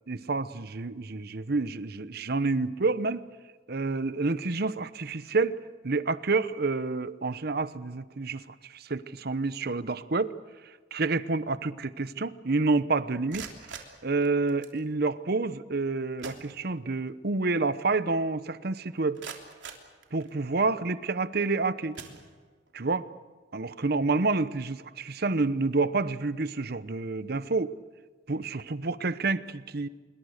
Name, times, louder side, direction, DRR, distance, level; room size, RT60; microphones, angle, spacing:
voice 1, 0.1-3.2 3.7-5.6 5.8-8.4 8.7-10.3 10.9-13.5 14.0-19.2 20.1-22.0 22.7-23.1 23.5-27.7 28.3-29.9, right 3 dB, 60° right, 14 dB, 0.9 m, -28 dB
sound 1, 13.1-14.8 15.8-15.9 16.2-17.1 17.5-17.6 18.1-18.2 18.8-20.6 21.3-21.5 21.9-22.8, right 6 dB, 85° right, 3.2 m, -45 dB
26.0 x 23.0 x 6.6 m, 1.5 s
head